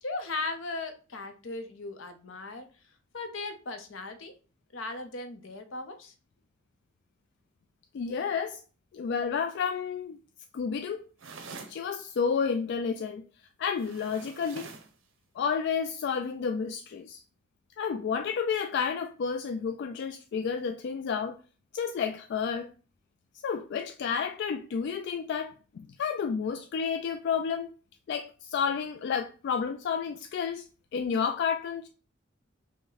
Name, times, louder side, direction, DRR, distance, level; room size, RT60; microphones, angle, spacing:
voice 1, 0.0-2.7 3.1-4.3 4.7-6.1, left 3 dB, 80° left, 0.7 m, -37 dB
voice 2, 7.9-8.6 8.9-10.2 10.5-11.0 11.7-13.2 13.6-14.7 15.4-17.2 17.8-21.4 21.7-22.7 23.4-27.7 28.1-30.7 30.9-31.9, left 6 dB, 60° left, 0.3 m, -31 dB
sound 1, 11.2-11.8 13.7-14.9, right 4 dB, 80° right, 0.7 m, -45 dB
5.2 x 2.1 x 3.9 m
head